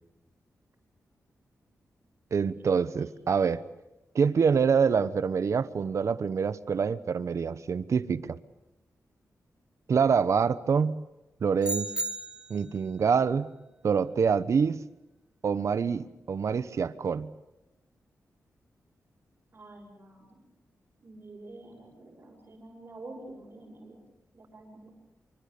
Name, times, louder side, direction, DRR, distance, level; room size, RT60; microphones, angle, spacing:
voice 1, 2.3-3.6 4.1-8.4 9.9-11.0 11.4-11.9 12.5-13.5 13.8-14.8 15.4-17.3, right 6 dB, 60° right, 14 dB, 1.0 m, -26 dB
voice 2, 3.0-3.3 19.5-20.4 21.0-24.0 24.3-24.9, right 2 dB, 40° right, -3 dB, 6.5 m, -48 dB
sound 1, 11.6-12.7, right 2 dB, 15° right, 1.5 m, -34 dB
26.0 x 24.5 x 6.9 m, 0.98 s
wide cardioid pair, 110°, 6 cm